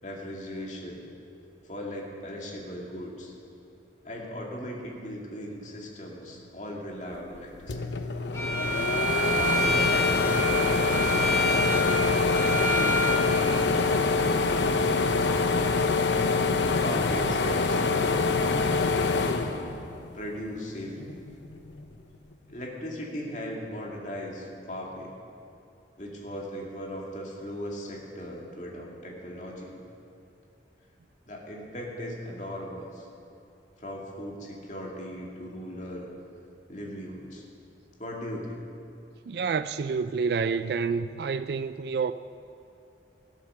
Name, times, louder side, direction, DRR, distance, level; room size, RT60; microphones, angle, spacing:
voice 1, 0.0-1.1 1.6-3.3 4.0-8.1 9.3-11.7 12.4-15.2 16.8-19.2 20.1-21.2 22.5-25.2 26.0-29.8 31.3-33.1 33.8-36.1 36.7-37.4 38.0-38.6, equal, 40° left, 2.3 m, -38 dB
sound 1, 7.3-7.4 7.7-20.3 20.7-21.8, left 4 dB, 80° left, 0.8 m, -25 dB
Bowed string instrument, 8.3-13.2, equal, 15° left, 1.7 m, -28 dB
voice 2, 39.3-42.1, right 5 dB, 60° right, 0.3 m, -28 dB
17.0 x 8.1 x 6.6 m
head